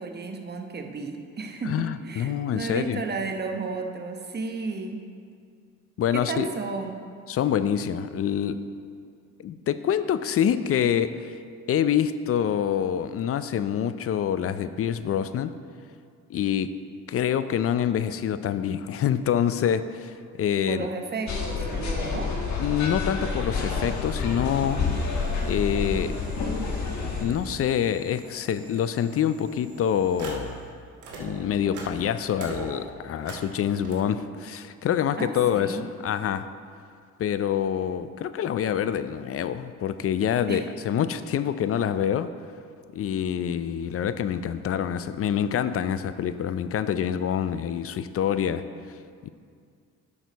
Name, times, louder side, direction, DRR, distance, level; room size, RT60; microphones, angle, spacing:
voice 1, 0.0-5.0 6.1-7.0 20.7-22.3 35.2-35.9 40.5-40.7, right 4 dB, 35° right, 4 dB, 0.9 m, -33 dB
voice 2, 1.7-3.0 6.0-6.5 7.3-8.6 9.4-11.4 11.7-15.5 16.3-16.7 17.1-20.9 22.6-24.8 25.4-26.2 27.2-30.5 31.2-36.5 37.2-42.3 42.9-48.6 49.2-49.3, left 9 dB, 50° left, 13 dB, 0.5 m, -26 dB
sound 1, 21.3-27.2, left 4 dB, 65° left, 1.5 m, -28 dB
sound 2, 23.8-30.7 30.9-33.9, right 3 dB, 75° right, 1.7 m, -43 dB
10.5 x 6.3 x 4.1 m, 2.2 s
cardioid pair, 90°, 30 cm